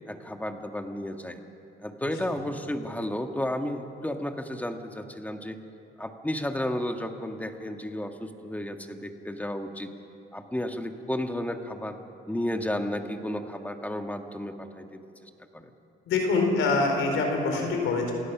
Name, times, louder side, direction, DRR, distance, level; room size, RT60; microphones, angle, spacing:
voice 1, 0.1-1.4 1.8-5.6 6.0-9.9 10.3-12.0 12.3-15.7, left 1 dB, 10° left, 5 dB, 1.6 m, -33 dB
voice 2, 16.1-18.1, left 3 dB, 85° left, 2 dB, 4.3 m, -25 dB
28.0 x 16.5 x 6.0 m, 2.7 s
cardioid pair, 90°, 20 cm